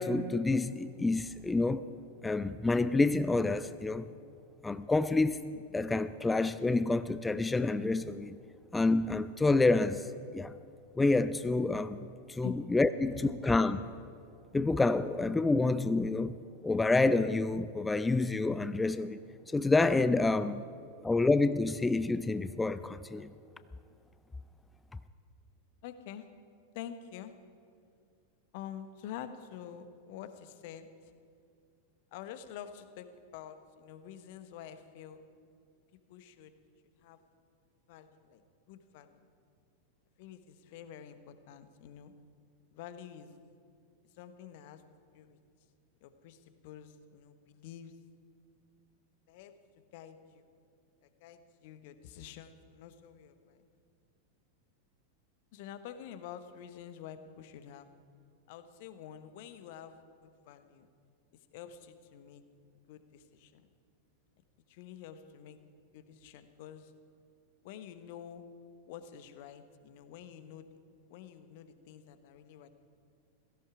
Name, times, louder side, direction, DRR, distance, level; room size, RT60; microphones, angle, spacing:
voice 1, 0.0-1.8 2.2-4.0 4.6-5.4 5.7-8.4 8.7-10.1 10.3-10.5 11.0-13.8 14.5-16.3 16.6-19.2 19.5-20.6 21.0-23.3, left 3 dB, 10° left, 0.4 m, -28 dB
voice 2, 25.8-26.3 26.7-27.3 28.5-31.1 32.1-33.1 33.3-35.2 36.1-36.5 37.0-37.2 37.9-38.4 38.7-39.3 40.2-42.1 42.7-43.3 44.1-44.8 45.1-45.4 46.0-47.9 49.3-50.4 51.0-53.7 55.5-57.9 58.5-60.9 61.5-62.4 62.9-63.7 64.7-65.6 65.9-66.9 67.6-68.5 68.9-70.7 71.1-72.7, left 9 dB, 50° left, 1.1 m, -48 dB
16.5 x 16.5 x 4.9 m
figure-of-eight pair, 90°, 0 cm